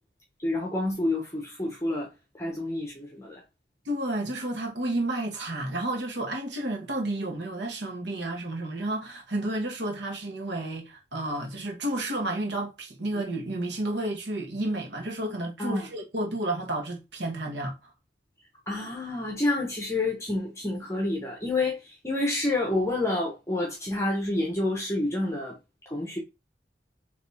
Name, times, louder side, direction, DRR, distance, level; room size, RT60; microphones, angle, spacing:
voice 1, 0.4-2.1 2.4-3.4 15.6-15.9 18.7-25.5 25.9-26.2, left 2 dB, 15° left, 0.9 m, -28 dB
voice 2, 3.8-17.7, right 1 dB, 70° right, 1.2 m, -31 dB
3.5 x 3.0 x 4.0 m
head